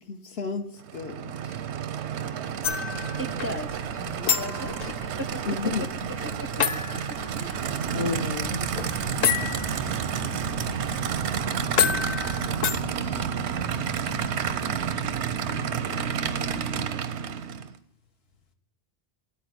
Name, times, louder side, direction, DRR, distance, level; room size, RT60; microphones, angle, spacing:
voice 1, 0.1-1.6 5.4-5.9 6.2-6.3 7.9-8.8 10.7-10.9, left 5 dB, 70° left, 5 dB, 1.2 m, -35 dB
Aircraft / Idling, 0.8-17.8, right 8 dB, 85° right, 0.9 m, -30 dB
sound 1, 2.6-13.2, left 8 dB, 55° left, 0.5 m, -31 dB
voice 2, 3.2-5.5 6.2-6.7 7.3-7.9, equal, 15° right, 7 dB, 0.5 m, -37 dB
sound 2, 8.4-16.9, right 2 dB, 30° left, 1.0 m, -39 dB
voice 3, 17.0-17.8, left 2 dB, 90° left, 1 dB, 1.7 m, -70 dB
9.8 x 4.3 x 7.6 m, 0.84 s
omnidirectional pair, 1.1 m